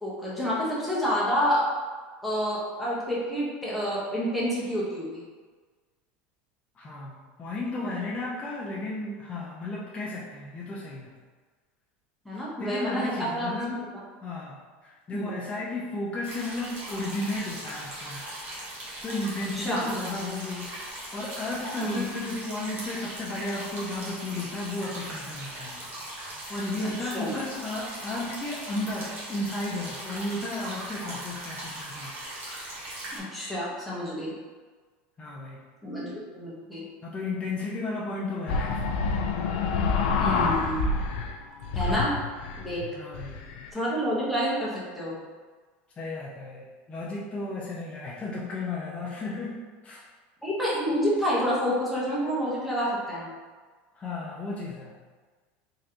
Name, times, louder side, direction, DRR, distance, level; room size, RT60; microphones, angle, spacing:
voice 1, 0.0-1.7 2.2-5.2 12.2-13.8 15.1-15.3 19.5-19.8 21.8-22.0 26.8-27.4 33.1-34.3 35.8-36.8 40.2-40.9 41.7-42.2 42.6-42.8 43.7-45.1 50.4-53.3, equal, ahead, -8 dB, 1.2 m, -28 dB
voice 2, 6.8-11.2 12.3-13.8 14.2-18.3 19.0-32.2 35.2-35.6 37.0-39.1 43.0-43.4 46.0-50.0 54.0-55.0, left 2 dB, 20° left, -5 dB, 0.6 m, -34 dB
sound 1, 16.2-33.2, right 1 dB, 40° right, 1.3 m, -39 dB
sound 2, 38.5-41.4 41.6-43.7, left 4 dB, 75° left, 0.4 m, -27 dB
3.7 x 3.1 x 2.9 m, 1.4 s
supercardioid pair, 130°, 6 cm